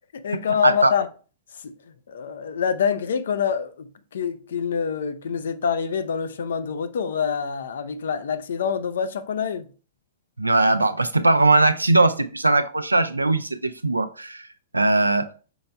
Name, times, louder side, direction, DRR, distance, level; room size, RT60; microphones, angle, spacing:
voice 1, 0.1-1.1 1.6-1.7 2.1-9.7, left 7 dB, 65° left, 0.4 m, -26 dB
voice 2, 10.4-14.5 14.7-15.3, right 2 dB, 90° right, 0.4 m, -20 dB
5.4 x 4.3 x 2.2 m
figure-of-eight pair, 105°, 0 cm